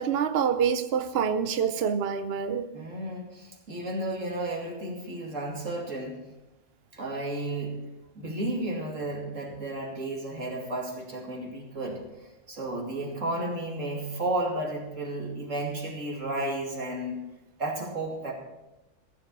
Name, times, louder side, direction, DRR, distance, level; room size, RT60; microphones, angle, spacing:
voice 1, 0.0-2.7, right 7 dB, 60° right, 10 dB, 0.8 m, -26 dB
voice 2, 2.7-6.2 6.9-7.8 8.2-17.2 17.6-18.3, right 2 dB, 80° right, 0 dB, 2.8 m, -33 dB
15.0 x 7.7 x 5.4 m, 0.99 s
omnidirectional pair, 1.3 m